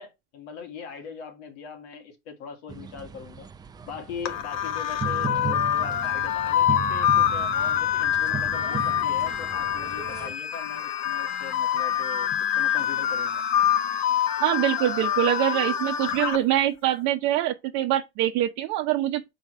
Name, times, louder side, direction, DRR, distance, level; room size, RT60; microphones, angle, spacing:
voice 1, 0.0-3.5 3.8-13.4, left 6 dB, 85° left, 2.5 m, -41 dB
sound 1, 2.7-10.3, right 7 dB, 15° right, 0.4 m, -36 dB
sound 2, 4.3-16.4, left 10 dB, 55° left, 1.2 m, -25 dB
voice 2, 14.4-19.3, right 13 dB, 60° right, 0.9 m, -24 dB
6.4 x 4.5 x 4.6 m
cardioid pair, 150°, 32 cm